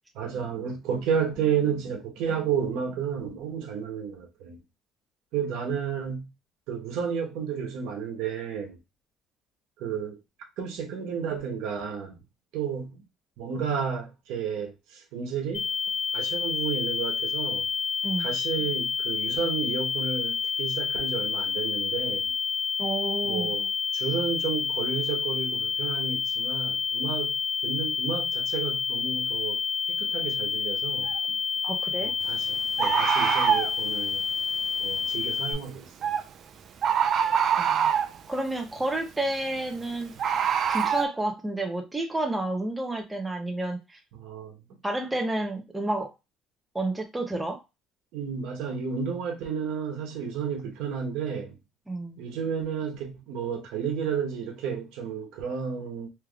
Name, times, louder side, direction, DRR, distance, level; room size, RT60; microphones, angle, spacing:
voice 1, 0.1-4.6 5.3-6.3 6.7-8.8 9.8-10.2 10.6-12.2 12.5-13.0 13.4-15.7 16.1-17.7 18.2-22.3 23.2-27.3 27.6-29.6 29.9-31.1 32.0-34.3 34.8-35.9 44.1-44.6 48.1-51.5 52.2-56.1, right 7 dB, 85° right, 1.0 m, -32 dB
sound 1, 15.5-35.5, left 6 dB, 45° left, 1.0 m, -29 dB
voice 2, 22.8-23.5 31.6-32.1 37.6-37.9 38.3-40.1 40.7-44.0 44.8-46.1 46.7-47.6 51.9-52.2, right 2 dB, 10° right, 0.6 m, -30 dB
Bird, 31.1-31.2 32.8-33.7 36.0-36.2 36.8-38.2 40.2-41.0, right 8 dB, 45° right, 0.4 m, -24 dB
3.4 x 3.1 x 2.3 m
cardioid pair, 145°, 0 cm